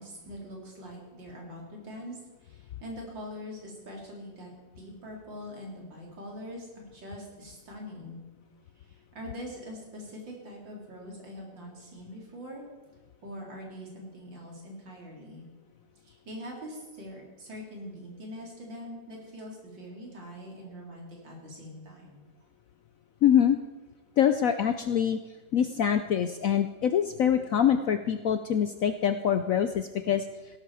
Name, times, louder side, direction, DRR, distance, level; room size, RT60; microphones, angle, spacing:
voice 1, 0.0-4.5 4.8-8.2 8.8-12.6 13.2-15.4 16.0-22.3, equal, 75° right, -1 dB, 4.3 m, -43 dB
voice 2, 23.2-23.6 24.2-25.2 25.5-30.2, left 9 dB, 65° left, 9 dB, 0.8 m, -24 dB
17.0 x 12.5 x 4.9 m, 1.2 s
omnidirectional pair, 2.0 m